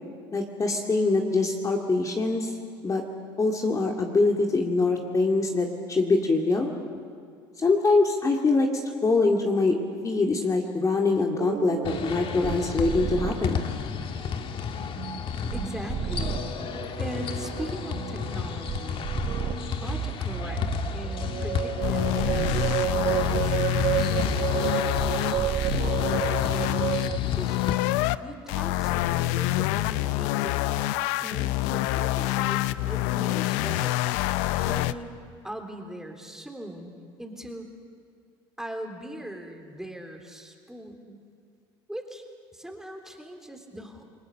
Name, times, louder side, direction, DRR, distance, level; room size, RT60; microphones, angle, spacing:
voice 1, 0.3-2.5 2.8-3.0 3.4-6.7 7.6-8.7 9.0-13.6, left 3 dB, 30° left, 1 dB, 2.3 m, -24 dB
sound 1, 11.4-27.2, right 11 dB, 55° right, 1.0 m, -31 dB
sound 2, 11.8-27.7, left 7 dB, 45° left, 1.5 m, -33 dB
voice 2, 15.5-16.5 17.0-19.1 19.8-20.6 20.9-25.7 26.5-26.9 27.3-27.6 28.2-34.1 34.6-35.2 35.4-36.9 37.2-37.7 38.6-41.2 41.9-42.2 42.5-44.0, right 1 dB, 5° right, 3 dB, 3.7 m, -40 dB
sound 3, 21.8-28.2 28.5-34.9, left 17 dB, 75° left, 0.6 m, -27 dB
28.5 x 21.0 x 6.7 m, 2.2 s
hypercardioid pair, 75°, 12 cm